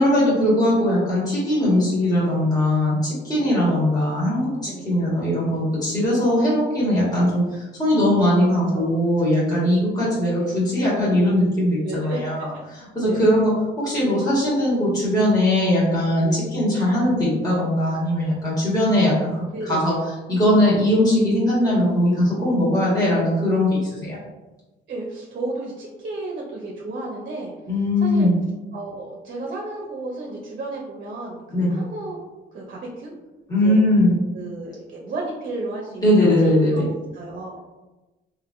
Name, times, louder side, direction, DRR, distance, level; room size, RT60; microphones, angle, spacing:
voice 1, 0.0-19.9 20.3-24.2 27.7-28.3 31.5-31.7 33.5-34.2 36.0-36.9, left 1 dB, 20° left, -8 dB, 1.5 m, -20 dB
voice 2, 8.2-9.3 10.3-10.6 11.8-12.2 13.0-13.3 16.2-16.4 19.5-20.0 24.9-27.5 28.0-28.3 28.7-32.2 32.5-33.1 33.6-33.8 34.3-37.6, right 2 dB, 45° right, -2 dB, 0.6 m, -33 dB
3.3 x 2.6 x 2.5 m, 1.1 s
cardioid pair, 90°, 20 cm